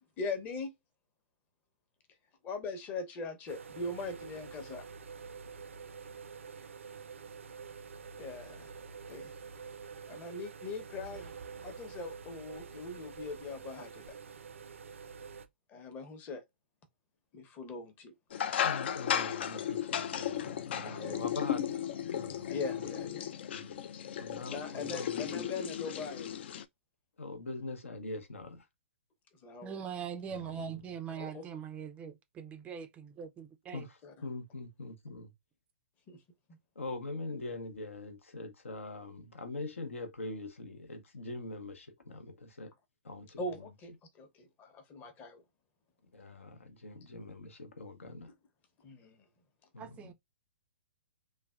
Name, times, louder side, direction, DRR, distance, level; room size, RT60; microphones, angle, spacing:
voice 1, 0.2-0.7 2.4-4.9 8.2-8.7 9.1-9.3 10.1-11.3 11.6-14.2 15.7-16.4 17.3-18.1 20.8-21.2 22.5-23.3 24.5-26.3 29.4-29.8 31.2-31.4 34.0-34.1 36.1-36.2 36.5-36.6 43.4-43.9 44.2-45.4 48.8-49.3, left 3 dB, 25° left, 0.7 m, -41 dB
sound 1, 3.5-15.5, right 6 dB, 80° right, 0.5 m, -47 dB
sound 2, 18.3-26.6, left 9 dB, 55° left, 0.3 m, -35 dB
voice 2, 18.6-22.5 23.5-23.7 24.2-25.4 27.2-28.6 30.4-30.5 33.7-33.9 34.2-35.3 36.8-42.7 43.0-43.4 46.1-48.3 49.7-50.1, left 2 dB, 85° left, 0.8 m, -43 dB
voice 3, 29.6-33.9 49.8-50.1, right 7 dB, 20° right, 0.4 m, -42 dB
3.3 x 2.1 x 2.3 m
hypercardioid pair, 130°, 7 cm